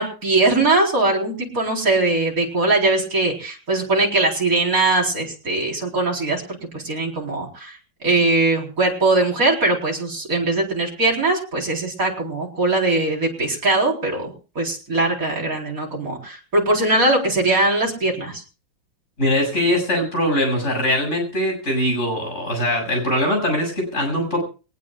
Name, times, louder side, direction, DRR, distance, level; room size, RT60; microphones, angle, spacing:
voice 1, 0.0-6.4 6.7-7.8 8.0-18.4, right 2 dB, 40° right, -1 dB, 4.6 m, -21 dB
voice 2, 19.2-24.4, left 1 dB, 30° left, 2 dB, 7.8 m, -22 dB
22.5 x 19.0 x 2.4 m, 0.34 s
omnidirectional pair, 2.3 m